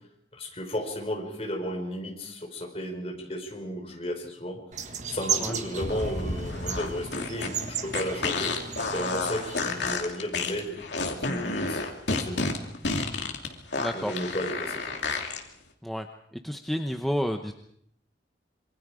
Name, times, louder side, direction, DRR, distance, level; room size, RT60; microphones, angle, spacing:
voice 1, 0.3-8.6 8.9-10.8 11.1-12.4 13.9-14.9, equal, 30° left, 2 dB, 5.0 m, -34 dB
sound 1, 4.7-10.0, right 6 dB, 40° right, 1.6 m, -35 dB
sound 2, 5.8-15.4, left 3 dB, 70° left, 2.8 m, -30 dB
voice 2, 13.7-14.1 15.8-16.1 16.4-17.5, equal, ahead, 5 dB, 0.8 m, -30 dB
26.5 x 24.0 x 5.0 m, 0.71 s
head